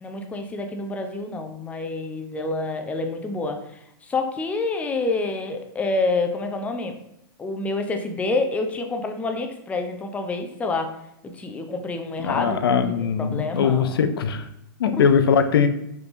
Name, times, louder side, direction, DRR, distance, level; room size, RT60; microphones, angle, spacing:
voice 1, 0.0-3.6 4.0-7.0 7.4-10.9 11.2-12.6 12.9-14.0 14.9-15.1, left 3 dB, 10° left, 5 dB, 0.4 m, -28 dB
voice 2, 12.2-14.4 14.8-15.7, left 6 dB, 85° left, 9 dB, 0.4 m, -20 dB
3.4 x 3.1 x 2.5 m, 0.77 s
hypercardioid pair, 120°, 12 cm